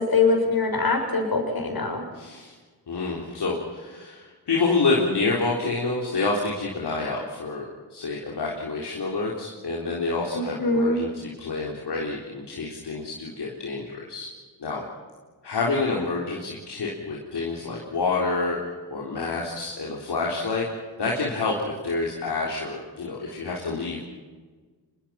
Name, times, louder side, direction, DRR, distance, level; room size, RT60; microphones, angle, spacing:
voice 1, 0.0-2.0 10.3-11.0, left 3 dB, 55° left, 3 dB, 6.5 m, -23 dB
voice 2, 2.1-2.5 2.9-11.1 11.4-14.3 14.6-14.8 15.4-18.6 18.9-20.7 21.0-24.0, left 3 dB, 70° left, -3 dB, 4.0 m, -28 dB
24.5 x 22.5 x 5.9 m, 1.4 s
cardioid pair, 50°, 42 cm